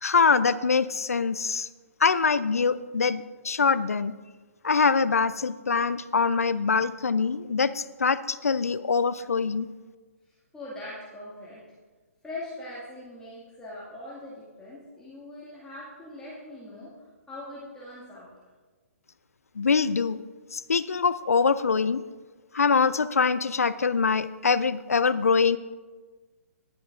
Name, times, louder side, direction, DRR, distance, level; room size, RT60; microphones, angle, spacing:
voice 1, 0.0-1.7 2.0-4.1 4.6-9.7 19.6-20.2 20.5-22.0 22.5-25.6, left 5 dB, 75° left, 15 dB, 0.4 m, -24 dB
voice 2, 10.3-11.6 12.2-18.3, left 1 dB, 5° left, -9 dB, 2.2 m, -42 dB
23.0 x 7.8 x 2.6 m, 1.4 s
figure-of-eight pair, 130°, 8 cm